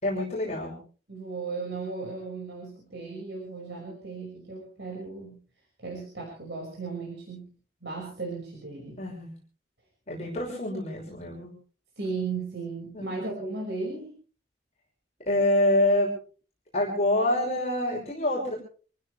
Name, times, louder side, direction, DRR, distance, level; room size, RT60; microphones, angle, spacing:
voice 1, 0.0-0.8 9.0-9.3 10.1-11.5 12.9-13.2 15.3-16.1 16.7-18.5, left 1 dB, 40° left, -2 dB, 5.9 m, -26 dB
voice 2, 1.1-5.4 5.8-7.5 7.8-9.0 12.0-14.1, right 4 dB, 75° right, -1 dB, 5.8 m, -36 dB
27.0 x 15.5 x 3.4 m, 0.39 s
head